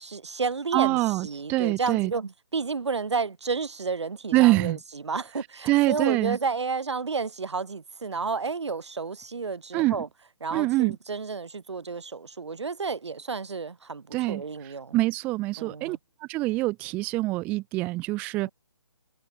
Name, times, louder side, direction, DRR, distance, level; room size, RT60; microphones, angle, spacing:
voice 1, 0.0-10.1 10.4-14.9 15.6-16.0, right 4 dB, 70° right, 1.4 m, -31 dB
voice 2, 0.7-2.1 4.3-4.8 5.7-6.4 9.7-10.0 10.5-11.0 14.1-14.4 14.9-18.5, right 20 dB, 10° right, 0.5 m, -25 dB
figure-of-eight pair, 150°, 15 cm